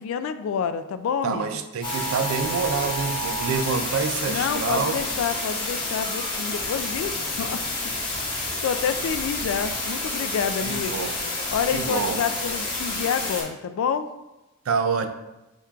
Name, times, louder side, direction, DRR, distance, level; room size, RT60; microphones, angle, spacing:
voice 1, 0.0-1.5 4.3-7.8 8.2-11.1 11.5-14.1, left 7 dB, 80° left, 11 dB, 0.3 m, -28 dB
voice 2, 1.2-5.0 10.6-11.3 11.7-12.2 14.7-15.1, right 5 dB, 80° right, 8 dB, 0.4 m, -27 dB
sound 1, 1.8-13.4, left 2 dB, 25° left, 0.8 m, -29 dB
3.5 x 2.3 x 4.4 m, 1.0 s
head